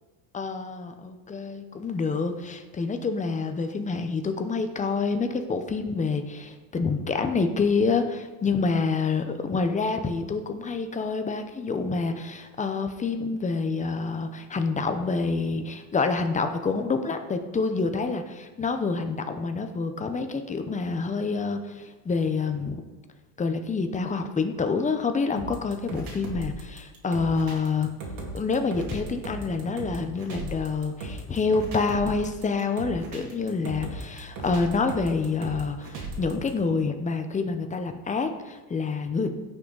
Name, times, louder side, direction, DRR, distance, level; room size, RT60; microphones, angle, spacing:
voice 1, 0.3-22.8 23.4-27.9 28.3-39.4, left 4 dB, 15° left, 7 dB, 0.8 m, -27 dB
sound 1, 25.4-36.5, right 2 dB, 45° right, 2.9 m, -37 dB
16.5 x 6.4 x 4.0 m, 1.2 s
supercardioid pair, 130°, 48 cm